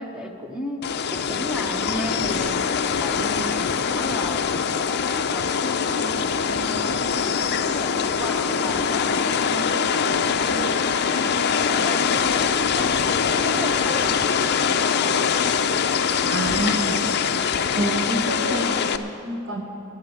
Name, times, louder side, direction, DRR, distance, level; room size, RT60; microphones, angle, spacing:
voice 1, 0.0-2.6 3.0-12.9 13.3-15.6 17.7-18.3, equal, 5° right, 2 dB, 1.0 m, -35 dB
sound 1, 0.8-19.0, left 6 dB, 50° left, 0.5 m, -23 dB
voice 2, 16.3-17.4 17.7-19.6, right 1 dB, 55° right, 1 dB, 1.8 m, -28 dB
13.0 x 10.5 x 6.6 m, 2.6 s
head